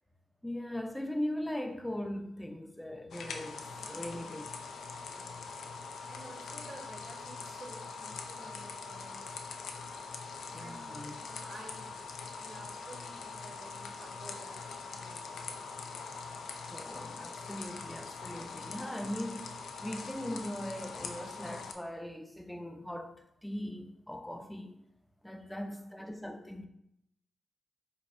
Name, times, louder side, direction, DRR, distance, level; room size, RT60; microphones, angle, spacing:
voice 1, 0.4-4.4 10.5-11.1 16.7-23.1 23.4-24.8 25.2-26.7, left 1 dB, 5° left, 0.5 m, -40 dB
sound 1, 3.1-21.7, left 4 dB, 75° left, 0.4 m, -43 dB
voice 2, 3.6-4.4 5.0-5.5 5.8-9.4 10.6-11.9 12.3-15.6 25.3-26.0, right 2 dB, 60° right, 1.5 m, -52 dB
4.3 x 2.3 x 4.4 m
cardioid pair, 70°, 0 cm